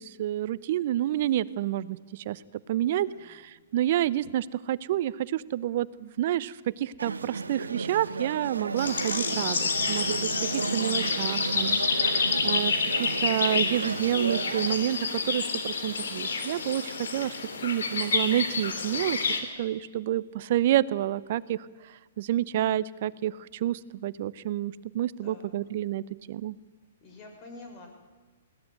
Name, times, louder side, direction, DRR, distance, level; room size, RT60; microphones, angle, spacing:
voice 1, 0.0-2.4 2.7-17.3 17.6-19.2 19.6-26.6, right 12 dB, 50° right, 18 dB, 0.8 m, -29 dB
sound 1, 7.0-14.8, right 4 dB, 85° right, 1.1 m, -34 dB
sound 2, 8.8-19.4, left 4 dB, 70° left, 3.4 m, -29 dB
voice 2, 25.2-25.5 27.0-27.9, left 2 dB, 35° left, 4 dB, 6.7 m, -47 dB
21.0 x 17.5 x 9.3 m, 1.4 s
hypercardioid pair, 125°, 0 cm